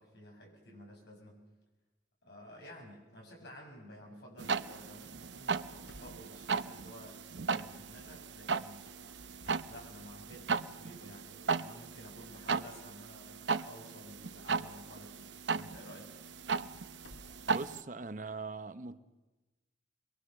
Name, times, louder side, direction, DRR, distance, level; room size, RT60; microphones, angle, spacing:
voice 1, 0.0-1.4 2.2-7.2 7.5-8.9 9.6-16.1, equal, 65° left, 7.1 m, -52 dB
sound 1, 4.4-17.8, right 5 dB, 75° right, 0.7 m, -37 dB
sound 2, 5.4-7.4 8.6-10.5 11.2-11.3 12.0-12.1 14.7-14.9 15.4-15.5 16.4-17.6, left 1 dB, 90° left, 3.2 m, -58 dB
voice 2, 17.5-19.0, right 3 dB, 45° right, 0.9 m, -41 dB
23.0 x 22.5 x 6.7 m
head